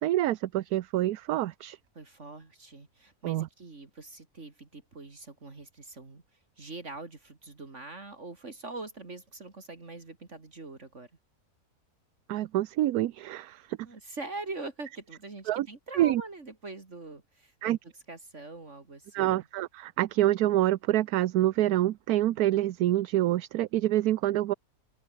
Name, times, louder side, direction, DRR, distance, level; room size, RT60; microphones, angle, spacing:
voice 1, 0.0-1.8 3.2-3.5 12.3-13.8 15.5-15.7 16.0-16.2 17.6-17.8 19.1-24.5, right 14 dB, 75° right, 1.2 m, -26 dB
voice 2, 1.9-6.2 6.6-11.1 13.8-17.8 18.1-19.4, right 3 dB, 50° right, 3.1 m, -43 dB
open air
omnidirectional pair, 1.6 m